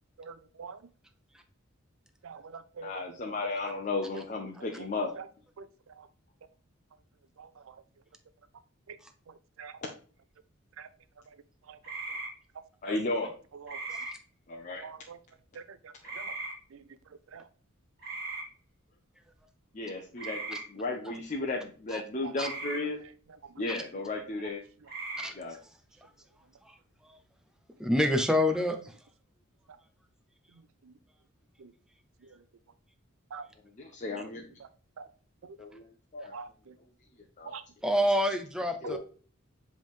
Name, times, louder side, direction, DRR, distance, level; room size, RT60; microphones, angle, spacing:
voice 1, 0.2-0.8 2.2-2.9 5.2-5.3 5.6-5.7 6.0-6.1 7.4-7.7 8.9-9.0 9.6-9.7 10.8-10.9 11.7-11.8 13.6-13.8 14.8-15.2 15.6-16.4 16.7-16.8 17.3-17.4 31.6-31.7 33.3-33.5 35.0-35.1 35.4-35.5 36.3-36.7 37.5-37.6, right 5 dB, 75° right, 14 dB, 0.5 m, -44 dB
voice 2, 2.8-5.1 9.8-9.9 12.8-13.3 14.5-14.9 16.0-16.1 19.7-23.0 23.6-24.6 25.3-25.6 33.7-34.5 35.6-35.9 36.1-36.4 37.4-37.5 38.8-39.0, left 2 dB, 35° left, -1 dB, 0.8 m, -34 dB
sound 1, 11.8-12.3 13.7-14.1 16.0-16.5 18.0-18.4 20.2-20.6 22.4-22.8 24.8-25.3, right 3 dB, 50° right, 3.3 m, -37 dB
voice 3, 27.8-28.8 37.8-39.0, left 1 dB, 5° right, 6 dB, 0.5 m, -27 dB
7.8 x 3.5 x 3.6 m, 0.41 s
head